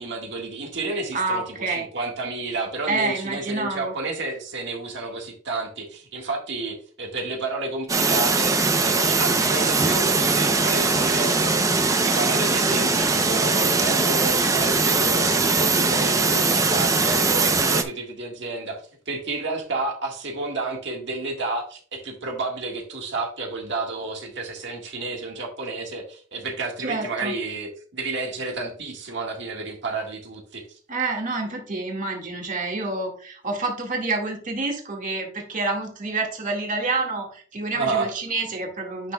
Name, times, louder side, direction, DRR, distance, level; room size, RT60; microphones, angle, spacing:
voice 1, 0.0-8.5 8.8-30.6 37.7-38.1, right 3 dB, 60° right, 1 dB, 1.7 m, -31 dB
voice 2, 1.1-1.9 2.9-4.0 26.8-27.4 30.9-39.1, right 3 dB, 40° right, 1 dB, 1.9 m, -28 dB
sound 1, 7.9-17.8, right 3 dB, 15° right, 0.6 m, -21 dB
9.8 x 6.2 x 2.3 m, 0.43 s
head